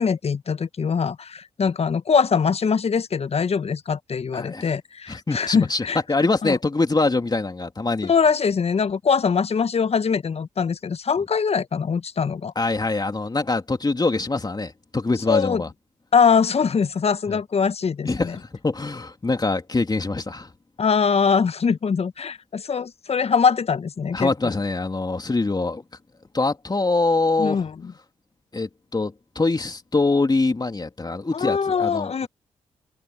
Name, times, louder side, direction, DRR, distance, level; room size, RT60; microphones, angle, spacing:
voice 1, 0.0-6.0 6.4-6.6 8.0-12.5 15.3-15.6 16.1-18.4 20.8-24.5 27.4-27.9 31.3-32.3, left 6 dB, 45° left, 1.1 m, -22 dB
voice 2, 4.3-4.7 5.1-5.8 6.1-8.1 12.5-15.7 17.3-17.4 18.0-20.5 24.1-25.8 26.3-27.6 28.5-32.3, left 3 dB, 30° left, 3.0 m, -24 dB
hypercardioid pair, 40°, 14 cm